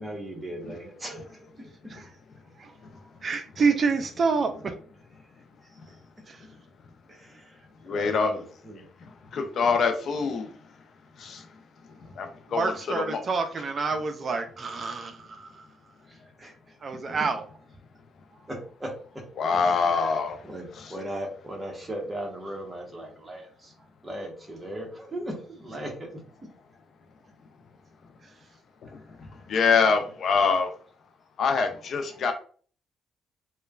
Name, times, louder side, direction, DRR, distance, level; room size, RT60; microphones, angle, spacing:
voice 1, 0.0-1.7 2.6-2.7 5.2-6.0 7.0-8.9 9.3-9.6 12.0-12.2 16.0-17.1 18.5-19.2 19.6-20.2 20.4-23.7 24.0-26.1 28.9-29.5 30.0-30.1, right 1 dB, 20° right, 0 dB, 1.0 m, -39 dB
voice 2, 3.2-4.7 6.3-6.5 12.5-15.8 16.8-17.4 28.2-28.5, right 4 dB, 45° right, 6 dB, 0.4 m, -28 dB
voice 3, 7.8-8.3 9.3-10.6 11.2-11.5 12.0-12.7 13.1-13.2 19.4-20.4 28.8-28.9 29.2-30.7 31.4-32.3, left 5 dB, 60° left, 6 dB, 0.4 m, -25 dB
3.0 x 2.2 x 2.3 m, 0.44 s
cardioid pair, 90°, 0 cm